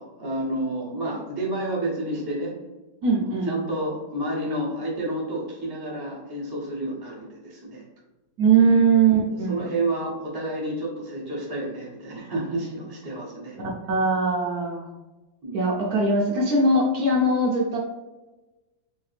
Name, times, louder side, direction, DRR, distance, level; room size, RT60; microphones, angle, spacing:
voice 1, 0.0-2.5 3.0-7.8 8.6-13.6 15.4-15.6, right 1 dB, 25° right, -5 dB, 0.5 m, -30 dB
voice 2, 3.0-3.5 8.4-9.6 13.9-14.9 15.5-17.8, right 3 dB, 65° right, -3 dB, 1.0 m, -20 dB
3.4 x 2.8 x 3.2 m, 1.1 s
omnidirectional pair, 2.1 m